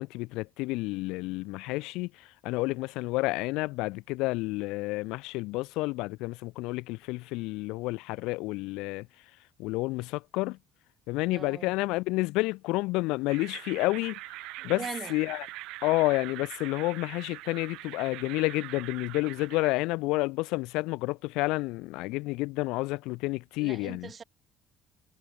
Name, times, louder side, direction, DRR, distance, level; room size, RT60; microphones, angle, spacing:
voice 1, 0.0-9.1 9.6-10.6 11.1-14.2 14.6-14.8 15.1-15.5 15.8-24.1, left 22 dB, 90° left, 2.2 m, -30 dB
voice 2, 11.3-11.7 14.6-15.1 23.6-24.2, right 6 dB, 30° right, 2.9 m, -40 dB
sound 1, 13.3-19.7, right 20 dB, 85° right, 7.2 m, -43 dB
cardioid pair, 125°, 0 cm